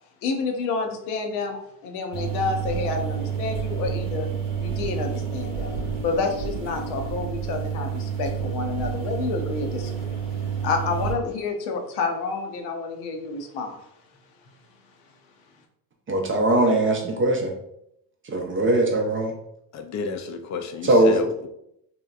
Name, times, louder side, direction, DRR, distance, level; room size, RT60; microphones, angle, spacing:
voice 1, 0.2-4.3 4.6-5.7 6.0-10.2 10.6-13.8, left 4 dB, 80° left, 4 dB, 0.6 m, -29 dB
sound 1, 2.1-11.1, right 7 dB, 70° right, 0.8 m, -29 dB
voice 2, 16.1-17.5 18.3-19.3 20.8-21.2, right 1 dB, 25° right, 2 dB, 0.4 m, -20 dB
voice 3, 19.7-21.5, left 4 dB, 40° left, 7 dB, 0.4 m, -31 dB
2.8 x 2.1 x 2.3 m, 0.77 s
supercardioid pair, 70°, 48 cm